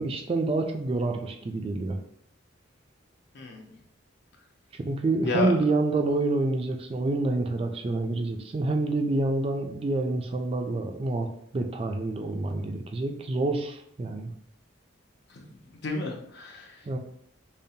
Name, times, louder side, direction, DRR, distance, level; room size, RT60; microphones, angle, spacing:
voice 1, 0.0-2.0 4.7-11.3 11.5-14.3 16.9-17.0, right 2 dB, 30° right, 4 dB, 0.3 m, -27 dB
voice 2, 3.3-3.7 5.2-5.5 15.3-15.5 15.8-16.8, left 2 dB, 60° left, 0 dB, 0.7 m, -31 dB
5.2 x 2.1 x 2.7 m, 0.70 s
head